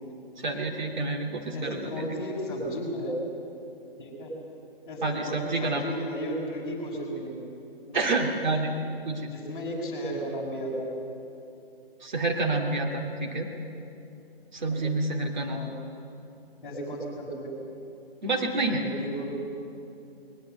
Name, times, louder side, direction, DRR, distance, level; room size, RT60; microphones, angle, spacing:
voice 1, 0.4-2.0 5.0-5.8 7.9-8.7 9.0-9.2 12.0-13.5 14.5-15.7 18.2-18.8, right 2 dB, 50° right, 1 dB, 2.3 m, -28 dB
voice 2, 1.5-3.2 4.0-4.3 4.9-7.5 7.9-8.0 9.2-11.0 14.6-14.8 15.5-15.8 16.6-17.6 18.7-19.3, equal, 15° left, -6 dB, 5.4 m, -34 dB
21.5 x 20.0 x 8.1 m, 2.7 s
figure-of-eight pair, 150°, 31 cm